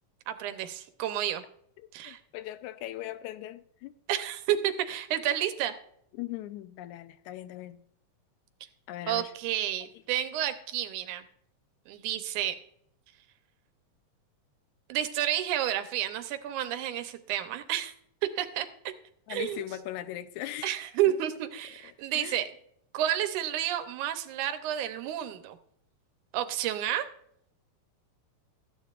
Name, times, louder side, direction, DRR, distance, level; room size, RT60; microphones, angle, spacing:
voice 1, 0.3-1.4 1.9-2.2 4.1-5.7 9.1-11.2 11.9-12.6 14.9-17.9 18.4-18.7 19.3-19.6 20.6-22.5 22.9-25.6 26.3-27.1, right 11 dB, 75° right, 2.1 m, -30 dB
voice 2, 1.8-3.9 6.1-7.8 8.9-9.3 19.3-20.8 21.1-21.2 21.8-22.4, left 14 dB, 75° left, 1.9 m, -40 dB
14.0 x 9.5 x 2.4 m
omnidirectional pair, 3.8 m